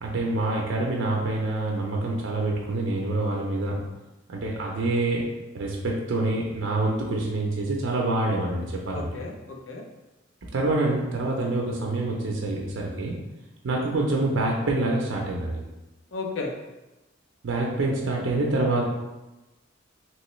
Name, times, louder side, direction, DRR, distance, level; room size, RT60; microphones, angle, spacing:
voice 1, 0.0-3.8 4.3-5.2 5.5-9.1 10.5-13.1 13.6-15.6 17.4-18.8, right 2 dB, 75° right, -1 dB, 0.5 m, -26 dB
voice 2, 8.9-9.8 16.1-16.5, left 3 dB, 70° left, 1 dB, 0.5 m, -33 dB
3.0 x 2.9 x 3.1 m, 1.0 s
head